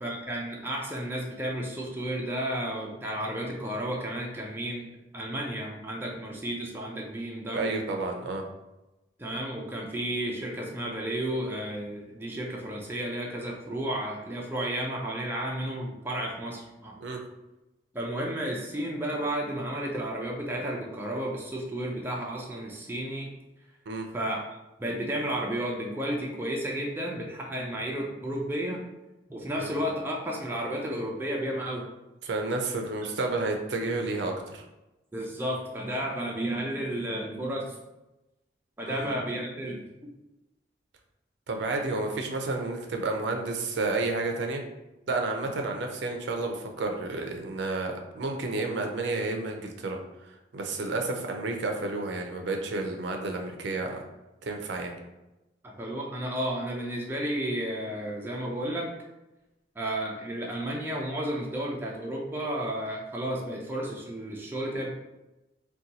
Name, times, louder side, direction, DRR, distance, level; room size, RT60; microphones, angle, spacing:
voice 1, 0.0-4.9 5.1-7.8 9.2-17.0 17.9-23.3 24.1-24.4 24.8-28.8 29.3-31.8 35.1-37.8 38.8-39.9 55.6-58.9 59.8-64.9, right 1 dB, 10° right, -2 dB, 0.4 m, -32 dB
voice 2, 7.5-8.4 17.0-17.2 23.9-24.1 29.6-29.7 32.2-34.6 38.9-39.1 41.5-44.6 45.1-54.0 54.4-54.9, right 3 dB, 70° right, 3 dB, 0.5 m, -31 dB
2.7 x 2.2 x 3.9 m, 0.99 s
head